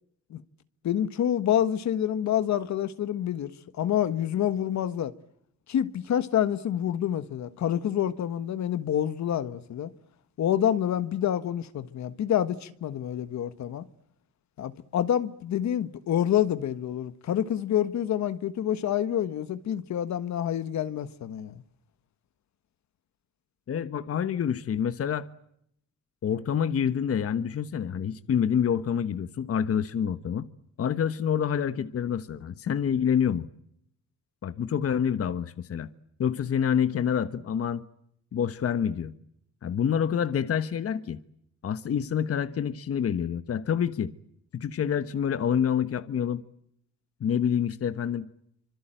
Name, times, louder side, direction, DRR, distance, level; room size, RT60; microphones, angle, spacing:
voice 1, 0.8-3.5 3.8-5.1 5.7-9.9 10.4-13.8 14.6-21.6, left 10 dB, 65° left, 1.4 m, -27 dB
voice 2, 23.7-25.3 26.2-30.5 30.8-33.5 34.4-35.9 36.2-37.8 38.3-39.1 39.6-41.2 41.6-44.1 44.5-46.4 47.2-48.2, left 8 dB, 50° left, 1.2 m, -27 dB
25.5 x 24.5 x 9.0 m
cardioid pair, 90°, 30 cm